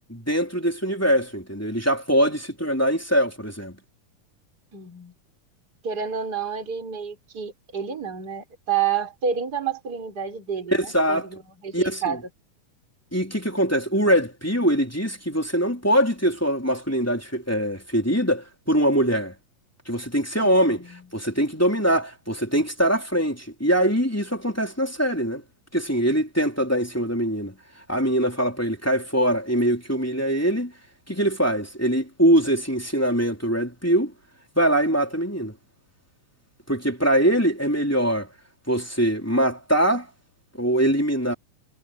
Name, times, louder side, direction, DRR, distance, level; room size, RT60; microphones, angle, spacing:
voice 1, 0.1-3.8 10.7-11.3 11.7-12.2 13.1-19.3 19.9-20.8 21.1-25.4 25.7-27.5 27.9-30.7 31.1-34.1 34.5-35.5 36.7-38.3 38.7-40.1 40.6-41.3, equal, 5° left, 3.2 m, -22 dB
voice 2, 4.7-5.1 5.8-12.2 20.4-21.0, right 7 dB, 30° right, 4.9 m, -29 dB
omnidirectional pair, 3.8 m